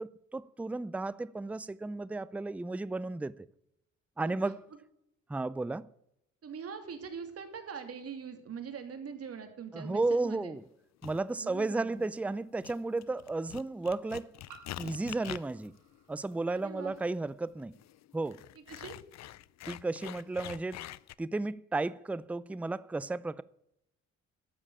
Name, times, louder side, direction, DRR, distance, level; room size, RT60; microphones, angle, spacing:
voice 1, 0.0-3.5 4.2-4.6 5.3-5.9 9.7-10.6 11.0-14.3 14.8-15.7 16.1-17.8 18.1-18.4 19.7-20.9 21.2-23.4, right 3 dB, 5° right, 0.4 m, -33 dB
voice 2, 6.4-10.6 11.3-12.0 16.5-16.9 18.5-19.0, right 6 dB, 50° right, 2.7 m, -43 dB
sound 1, 10.5-10.6 12.3-12.4 14.5-17.0, right 6 dB, 85° right, 2.5 m, -58 dB
sound 2, 11.0-11.2 11.9-12.3 12.6-21.1, left 14 dB, 60° left, 0.5 m, -46 dB
12.0 x 7.3 x 8.7 m
cardioid pair, 90°, 30 cm